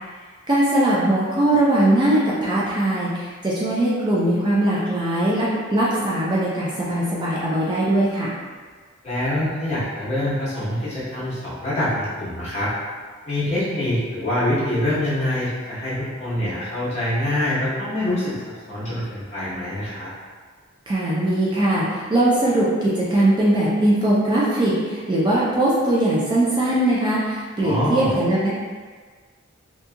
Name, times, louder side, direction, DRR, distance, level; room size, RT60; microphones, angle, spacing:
voice 1, 0.5-8.3 20.9-28.5, right 1 dB, 20° right, -7 dB, 0.3 m, -20 dB
voice 2, 9.0-12.7 13.3-20.1 27.6-28.1, left 1 dB, 30° left, -10 dB, 1.0 m, -25 dB
2.8 x 2.7 x 2.2 m, 1.5 s
head